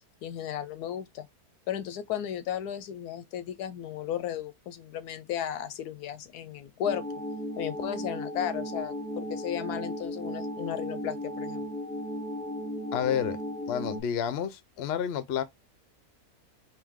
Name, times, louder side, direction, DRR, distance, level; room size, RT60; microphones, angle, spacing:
voice 1, 0.2-1.3 1.7-7.1 7.6-11.7, left 10 dB, 90° left, 1.2 m, -35 dB
sound 1, 6.8-14.0, equal, 10° left, 0.4 m, -35 dB
voice 2, 12.9-13.4 13.7-15.4, left 9 dB, 60° left, 0.7 m, -30 dB
3.7 x 2.8 x 3.6 m
omnidirectional pair, 1.6 m